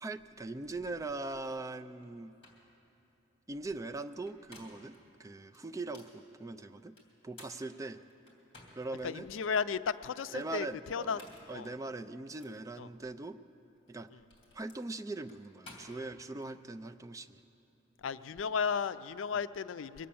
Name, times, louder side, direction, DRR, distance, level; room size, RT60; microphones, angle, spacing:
voice 1, 0.0-2.3 3.5-6.9 7.2-8.0 8.7-9.3 10.3-11.2 11.5-13.4 13.9-14.1 14.5-17.4, right 2 dB, 15° right, 8 dB, 0.4 m, -41 dB
sound 1, 2.0-2.1 2.4-2.7 4.1-5.0 5.5-6.2 7.0-9.0 9.5-9.6 10.9-11.6 12.4-12.6 13.8-16.5, left 2 dB, 30° left, 2.8 m, -55 dB
voice 2, 9.0-11.2 11.5-11.7 12.8-12.9 18.0-20.1, left 6 dB, 85° left, 14 dB, 0.4 m, -34 dB
23.0 x 8.6 x 7.0 m, 3.0 s
head